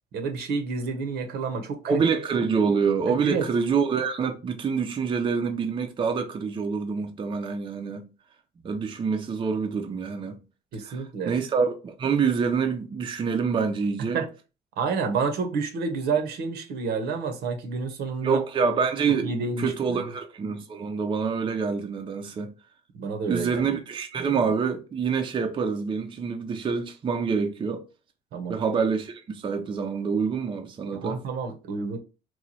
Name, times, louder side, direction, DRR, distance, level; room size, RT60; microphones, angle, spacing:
voice 1, 0.1-2.0 3.2-3.5 10.7-11.4 14.1-14.3 14.8-18.4 19.2-20.0 22.9-23.7 28.3-28.6 30.9-32.0, right 4 dB, 70° right, 0.8 m, -29 dB
voice 2, 1.9-8.1 8.6-10.4 10.8-14.2 18.2-22.5 23.3-27.8 28.5-31.2, right 5 dB, 30° right, 0.5 m, -26 dB
3.0 x 2.2 x 4.0 m
cardioid pair, 110°, 17 cm